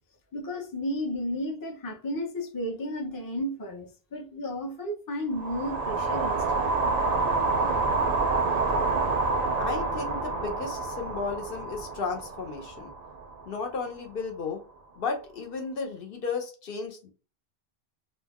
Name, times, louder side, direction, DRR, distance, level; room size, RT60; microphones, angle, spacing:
voice 1, 0.3-6.6, equal, 25° left, 0.5 m, -33 dB
sound 1, 5.3-13.6, right 3 dB, 55° right, 0.5 m, -28 dB
voice 2, 9.6-12.9 13.5-14.6 15.0-17.1, left 4 dB, 65° left, 0.8 m, -34 dB
2.4 x 2.1 x 3.4 m
omnidirectional pair, 1.0 m